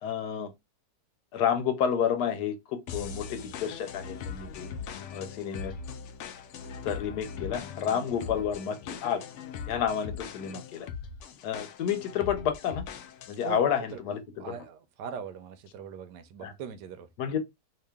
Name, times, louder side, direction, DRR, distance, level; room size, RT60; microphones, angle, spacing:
voice 1, 0.0-0.5 1.3-2.5 2.9-4.7 5.1-5.7 6.8-9.2 9.7-10.9 11.4-12.8 13.3-14.2 16.4-16.5 17.2-17.4, left 8 dB, 70° left, 1.2 m, -30 dB
sound 1, 2.9-13.5, left 6 dB, 90° left, 0.6 m, -40 dB
voice 2, 14.4-17.1, right 7 dB, 85° right, 1.2 m, -40 dB
2.9 x 2.8 x 3.4 m
omnidirectional pair, 1.8 m